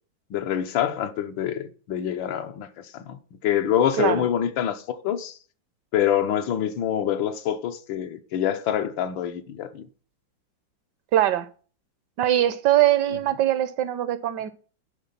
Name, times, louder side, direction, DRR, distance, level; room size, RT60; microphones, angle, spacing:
voice 1, 0.3-5.4 5.9-9.9, left 10 dB, 85° left, 1.6 m, -26 dB
voice 2, 11.1-11.5 12.2-14.5, right 13 dB, 70° right, 1.1 m, -22 dB
11.0 x 3.8 x 7.2 m
omnidirectional pair, 2.1 m